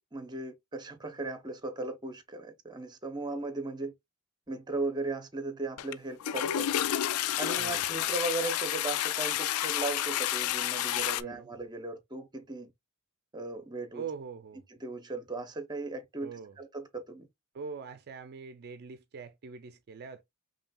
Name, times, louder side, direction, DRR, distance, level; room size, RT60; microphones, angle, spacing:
voice 1, 0.0-3.9 4.5-6.7 7.4-12.7 13.3-14.1 14.7-17.3, right 2 dB, 20° right, 0.7 m, -37 dB
Toilet flush, 5.8-5.9 6.2-11.2, left 12 dB, 75° left, 0.3 m, -30 dB
voice 2, 13.9-14.6 16.2-16.6 17.5-20.2, right 5 dB, 45° right, 0.4 m, -42 dB
5.4 x 2.7 x 2.3 m
head